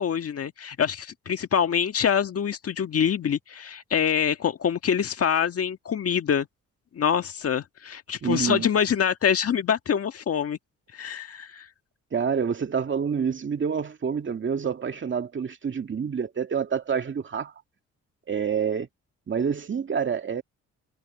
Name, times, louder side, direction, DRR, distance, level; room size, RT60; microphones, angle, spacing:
voice 1, 0.0-6.5 6.9-10.6 10.9-11.6, left 8 dB, 50° left, 1.7 m, -25 dB
voice 2, 8.2-8.7 12.1-17.5 18.3-18.9 19.3-20.4, right 6 dB, 40° right, 2.2 m, -27 dB
cardioid pair, 90°, 30 cm